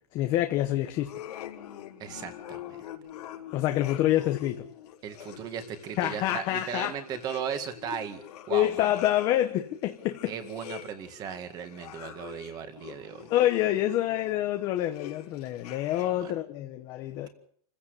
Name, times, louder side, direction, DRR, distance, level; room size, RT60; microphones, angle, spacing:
voice 1, 0.1-1.1 3.5-4.7 6.0-6.9 8.5-10.3 13.3-17.3, left 13 dB, 25° left, 0.9 m, -27 dB
sound 1, 1.0-16.3, left 11 dB, 90° left, 4.5 m, -45 dB
voice 2, 2.0-2.8 5.0-8.9 10.3-13.3 16.0-16.3, right 8 dB, 20° right, 2.0 m, -37 dB
28.0 x 16.0 x 6.7 m
supercardioid pair, 180°, 19 cm